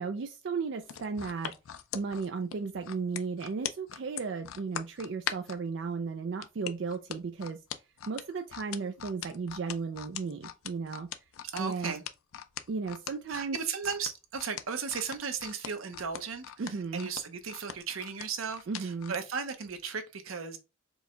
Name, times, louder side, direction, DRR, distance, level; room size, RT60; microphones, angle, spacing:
voice 1, 0.0-1.5 1.9-7.6 8.1-11.1 11.6-12.0 12.7-13.6 16.6-17.1 18.7-19.1, right 4 dB, 60° right, 0.4 m, -35 dB
sound 1, 0.8-5.6 6.4-19.2 19.7-19.8, left 9 dB, 90° left, 0.4 m, -40 dB
voice 2, 11.4-12.0 13.3-20.6, right 6 dB, 85° right, 0.7 m, -36 dB
4.5 x 2.2 x 3.7 m
head